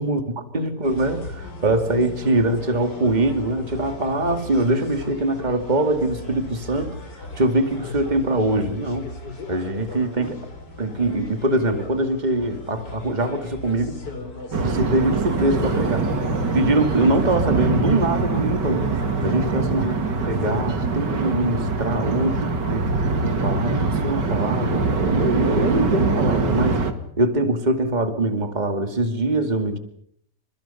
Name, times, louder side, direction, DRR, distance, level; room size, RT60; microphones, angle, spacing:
voice 1, 0.5-6.9 7.4-9.1 9.5-10.4 10.8-14.0 14.6-16.1 16.5-18.9 19.2-19.9 20.2-22.9 23.2-26.8 27.2-29.8, right 1 dB, 25° right, 7 dB, 2.4 m, -23 dB
sound 1, 0.8-20.6, left 2 dB, 80° left, 5.0 m, -38 dB
sound 2, 14.5-26.9, right 3 dB, 85° right, 2.9 m, -23 dB
29.5 x 27.0 x 5.7 m, 0.66 s
omnidirectional pair, 1.8 m